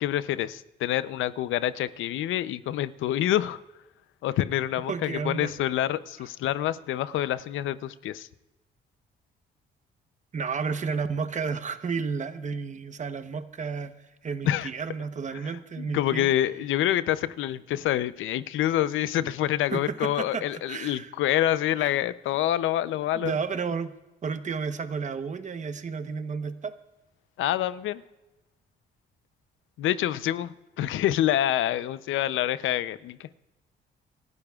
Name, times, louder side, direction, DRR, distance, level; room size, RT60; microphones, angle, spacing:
voice 1, 0.0-3.6 4.2-8.3 14.4-14.7 15.8-23.4 27.4-28.0 29.8-33.3, left 12 dB, 80° left, 0.6 m, -27 dB
voice 2, 4.9-5.5 10.3-13.9 14.2-16.3 19.7-21.1 23.1-23.9 24.2-26.7, right 5 dB, 40° right, 1.0 m, -32 dB
27.5 x 12.0 x 2.4 m
cardioid pair, 90°, 20 cm